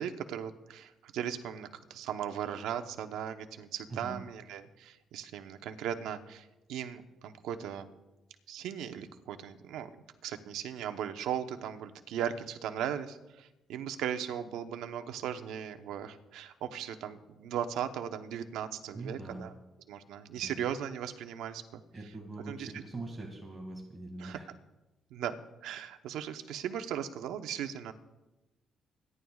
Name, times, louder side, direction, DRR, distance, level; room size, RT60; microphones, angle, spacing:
voice 1, 0.0-7.9 8.5-19.5 19.9-21.8 22.5-22.7 24.2-24.4 25.1-25.3 25.6-27.9, right 9 dB, 90° right, 7 dB, 0.9 m, -38 dB
voice 2, 3.9-4.2 18.9-19.5 20.4-20.6 21.9-24.5, right 2 dB, 20° right, 0 dB, 2.2 m, -42 dB
27.0 x 11.0 x 2.4 m, 1.0 s
cardioid pair, 90°, 0 cm